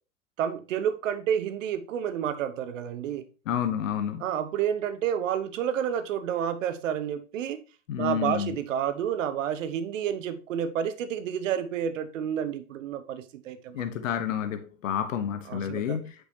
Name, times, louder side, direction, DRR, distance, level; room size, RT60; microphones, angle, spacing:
voice 1, 0.4-3.2 4.2-7.6 8.0-13.9 15.5-16.0, right 9 dB, 75° right, 1.3 m, -30 dB
voice 2, 3.5-4.2 7.9-8.6 13.7-16.1, left 9 dB, 80° left, 1.3 m, -29 dB
8.4 x 6.1 x 2.9 m
hypercardioid pair, 90°, 38 cm